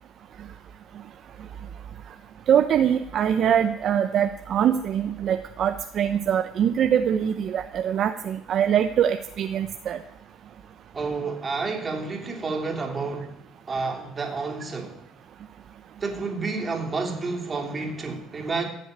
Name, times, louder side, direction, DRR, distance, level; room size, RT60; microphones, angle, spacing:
voice 1, 2.5-10.0, right 9 dB, 50° right, 0.8 m, -23 dB
voice 2, 10.9-13.4 13.7-15.1 16.0-18.7, right 4 dB, 25° right, 3.1 m, -30 dB
15.5 x 7.2 x 9.5 m
cardioid pair, 120°, 0 cm